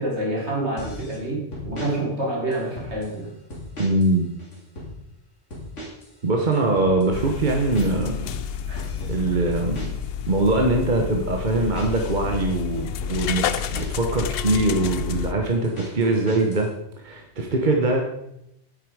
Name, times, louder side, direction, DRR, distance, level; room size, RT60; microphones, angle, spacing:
voice 1, 0.0-3.3 8.7-8.8, right 1 dB, 65° right, -3 dB, 3.5 m, -27 dB
sound 1, 0.8-1.2 1.5-1.9 2.5-3.1 3.5-4.1 4.4-4.9 5.5-6.1 6.4-10.1 10.5-10.9 11.5-14.1 14.5-16.7, equal, 80° left, 3.0 m, -37 dB
voice 2, 3.8-4.3 6.2-8.2 9.0-9.9 10.3-16.7 17.0-18.0, right 2 dB, 40° right, 2 dB, 1.2 m, -22 dB
sound 2, 7.1-15.3, left 8 dB, 65° left, 0.7 m, -30 dB
9.7 x 9.1 x 4.8 m, 0.81 s
omnidirectional pair, 1.2 m